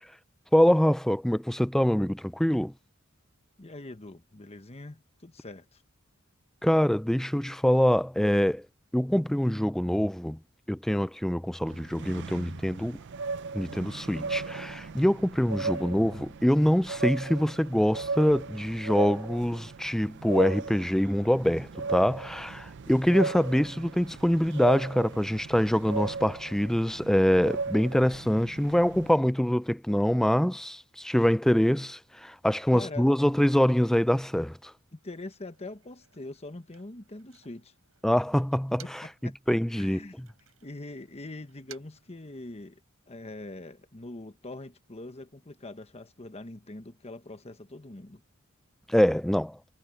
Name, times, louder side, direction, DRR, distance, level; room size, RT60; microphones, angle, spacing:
voice 1, 0.5-2.7 6.6-8.6 8.9-10.4 10.7-13.0 13.5-34.7 38.0-39.0 39.5-40.3 48.9-49.6, equal, ahead, 0.3 m, -25 dB
voice 2, 3.6-5.8 15.5-16.0 32.7-33.1 34.9-37.7 38.8-40.2 40.6-42.8 43.1-48.2, left 2 dB, 30° left, 1.2 m, -43 dB
sound 1, 11.7-29.1, right 4 dB, 60° right, 0.5 m, -37 dB
Motor vehicle (road), 34.8-39.3 39.6-42.9, right 10 dB, 85° right, 6.5 m, -58 dB
head